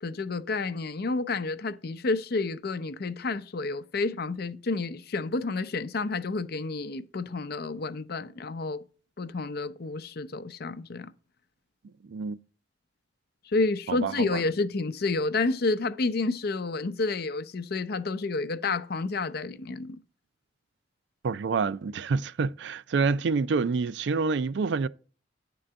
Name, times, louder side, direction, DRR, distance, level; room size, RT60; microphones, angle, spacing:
voice 1, 0.0-8.8 9.2-11.1 13.5-20.0, left 3 dB, 60° left, 0.6 m, -30 dB
voice 2, 13.9-14.4 21.2-24.9, right 4 dB, 75° right, 0.4 m, -27 dB
9.7 x 3.8 x 6.7 m
head